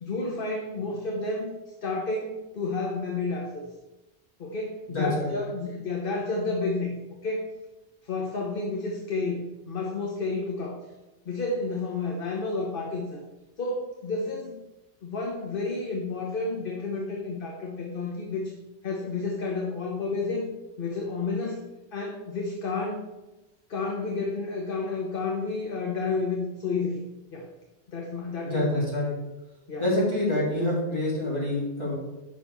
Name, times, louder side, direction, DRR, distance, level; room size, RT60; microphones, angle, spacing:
voice 1, 0.0-1.5 1.8-3.7 4.4-6.9 7.2-7.5 8.0-10.8 11.2-13.2 13.6-14.6 15.0-18.5 18.8-20.5 20.8-21.6 21.9-23.0 23.7-27.0 27.3-27.5 27.9-28.6 29.0-29.1 29.7-29.8, left 3 dB, 50° left, 0 dB, 1.2 m, -31 dB
voice 2, 4.9-5.3 28.4-29.1 29.8-31.9, left 1 dB, 25° left, -7 dB, 3.8 m, -26 dB
6.4 x 5.9 x 6.8 m, 1.0 s
omnidirectional pair, 1.2 m